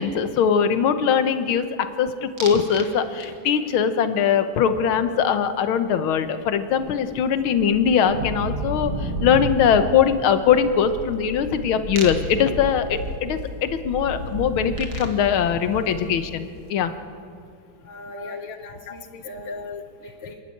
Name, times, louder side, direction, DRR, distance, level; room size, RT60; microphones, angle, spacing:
voice 1, 0.0-1.6 2.0-16.9 18.2-18.6 19.5-19.8, left 7 dB, 90° left, 10 dB, 1.8 m, -21 dB
sound 1, 2.4-2.9 3.2-3.7 6.1-6.2 6.4-16.5, right 2 dB, 80° right, 2.7 m, -32 dB
voice 2, 17.8-19.6 20.0-20.4, equal, 30° left, -3 dB, 2.7 m, -38 dB
28.0 x 11.5 x 8.6 m, 2.4 s
omnidirectional pair, 2.2 m